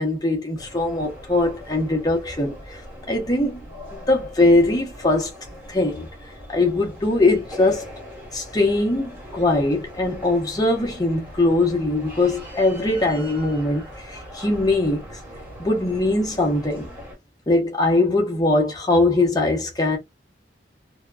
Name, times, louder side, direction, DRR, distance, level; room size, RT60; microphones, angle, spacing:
voice 1, 0.0-2.8 3.1-3.6 3.9-5.3 5.7-6.1 6.5-7.9 8.3-15.2 15.6-16.9 17.5-20.0, left 2 dB, 20° left, 0.8 m, -21 dB
sound 1, 0.6-17.2, equal, 10° right, 1.3 m, -40 dB
2.8 x 2.2 x 2.3 m
head